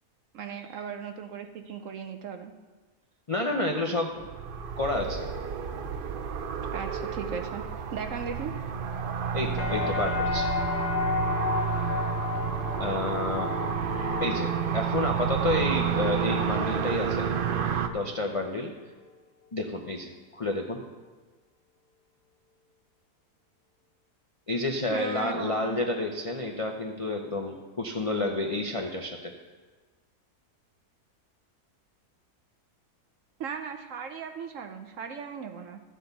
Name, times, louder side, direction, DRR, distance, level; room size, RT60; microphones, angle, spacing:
voice 1, 0.3-2.5 6.7-7.6 7.9-8.5 11.4-11.5 24.9-25.8 33.4-35.8, right 6 dB, 65° right, 6 dB, 0.9 m, -37 dB
voice 2, 3.3-4.2 4.8-5.3 9.3-10.5 12.8-13.5 14.2-17.3 17.9-18.7 19.5-20.8 24.5-29.3, left 2 dB, 50° left, 2 dB, 0.4 m, -30 dB
sound 1, 4.2-17.9, right 7 dB, 90° right, 0.4 m, -30 dB
sound 2, 9.6-17.5 17.8-18.5, left 6 dB, 75° left, 1.7 m, -33 dB
13.0 x 7.7 x 4.0 m, 1.4 s
omnidirectional pair, 1.7 m